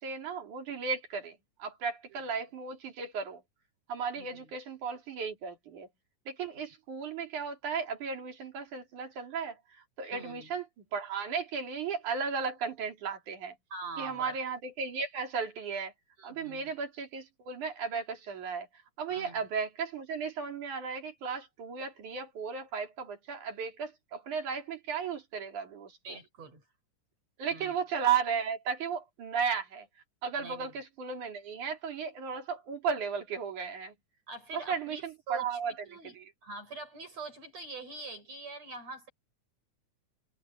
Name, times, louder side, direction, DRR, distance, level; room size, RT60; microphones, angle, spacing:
voice 1, 0.0-3.4 3.9-5.9 6.3-9.6 10.0-10.7 10.9-13.6 14.0-15.9 16.2-18.7 19.0-26.2 27.4-29.9 30.2-33.9 34.5-36.3, right 6 dB, 80° right, 4.9 m, -35 dB
voice 2, 4.2-4.5 10.1-10.5 13.7-14.3 16.2-16.7 19.1-19.4 26.0-26.6 27.5-27.7 30.4-30.7 34.3-35.6 35.8-36.1 36.4-39.1, right 3 dB, 60° right, 8.0 m, -44 dB
omnidirectional pair, 3.4 m